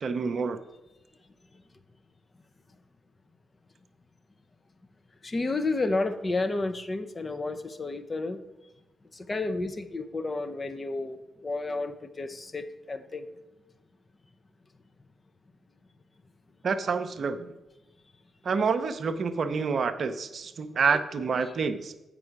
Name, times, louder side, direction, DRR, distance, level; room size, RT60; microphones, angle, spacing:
voice 1, 0.0-0.6 16.6-17.5 18.4-21.9, right 5 dB, 55° right, 10 dB, 0.6 m, -28 dB
voice 2, 5.2-8.4 9.1-13.3 21.4-21.5, left 2 dB, 35° left, 8 dB, 0.8 m, -31 dB
7.8 x 5.3 x 4.8 m, 1.0 s
hypercardioid pair, 40°, 0 cm